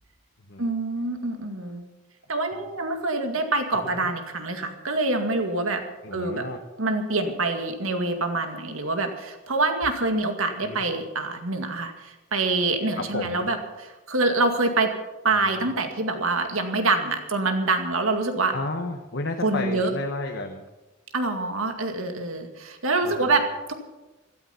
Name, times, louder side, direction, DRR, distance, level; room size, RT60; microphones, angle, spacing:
voice 1, 0.6-1.8 2.3-5.8 6.1-6.4 6.8-15.0 15.2-18.5 19.4-19.9 21.1-23.4 23.7-23.8, right 3 dB, 75° right, 5 dB, 2.1 m, -25 dB
voice 2, 6.0-6.6 10.6-10.8 13.0-13.5 15.3-15.6 18.5-20.7 23.0-23.4, left 2 dB, 55° left, 3 dB, 1.2 m, -32 dB
16.0 x 13.0 x 5.7 m, 1.1 s
head